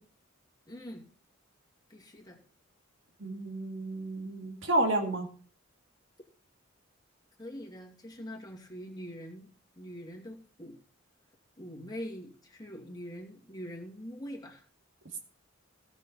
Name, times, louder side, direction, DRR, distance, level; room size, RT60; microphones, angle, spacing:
voice 1, 0.7-1.0 1.9-2.4 7.4-10.8 11.6-14.6, equal, 20° left, 0 dB, 2.3 m, -43 dB
voice 2, 3.2-5.3, right 1 dB, 60° right, 3 dB, 2.4 m, -30 dB
16.5 x 6.5 x 5.7 m, 0.43 s
head